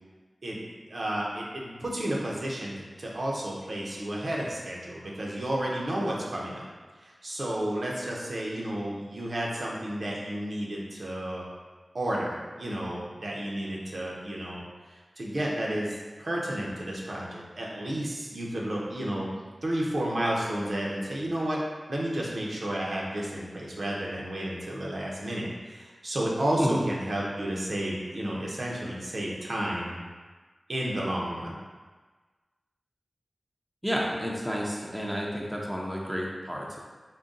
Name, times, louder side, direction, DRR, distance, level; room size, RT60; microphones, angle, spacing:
voice 1, 0.9-2.7 3.0-6.6 7.0-11.4 11.9-14.7 15.2-19.3 19.6-21.6 21.9-30.0 30.7-31.5, right 1 dB, 65° right, -4 dB, 0.7 m, -31 dB
voice 2, 33.8-36.8, equal, 5° right, -3 dB, 0.6 m, -30 dB
3.8 x 2.2 x 3.7 m, 1.4 s
wide cardioid pair, 60°, 0 cm